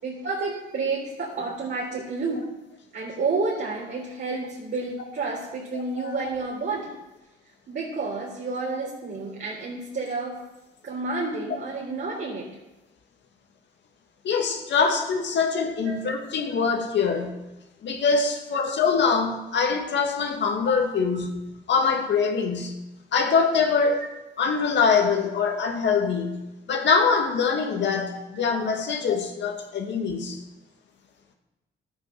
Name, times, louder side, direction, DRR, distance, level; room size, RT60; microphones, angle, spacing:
voice 1, 0.0-2.4 2.9-7.0 7.7-10.4 10.8-12.5 15.8-16.0 28.3-28.4, right 3 dB, 55° right, -6 dB, 3.8 m, -30 dB
voice 2, 6.0-6.3 14.2-17.4 17.8-21.4 21.7-22.8 23.1-24.0 24.4-26.4 26.7-30.4, left 5 dB, 65° left, 3 dB, 2.2 m, -24 dB
12.5 x 8.8 x 6.7 m, 1.0 s
cardioid pair, 90°, 20 cm